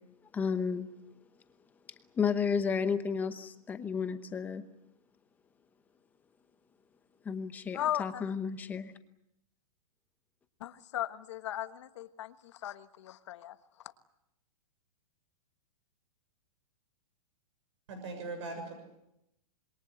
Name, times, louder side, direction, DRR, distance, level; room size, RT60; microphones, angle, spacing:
voice 1, 0.3-0.9 2.1-4.6 7.2-8.9, left 6 dB, 10° left, 10 dB, 0.9 m, -32 dB
voice 2, 7.7-8.3 10.6-13.6, left 12 dB, 50° left, 11 dB, 1.4 m, -37 dB
voice 3, 17.9-18.7, right 3 dB, 50° right, 6 dB, 6.8 m, -39 dB
27.0 x 22.5 x 8.0 m, 0.84 s
hypercardioid pair, 170°, 19 cm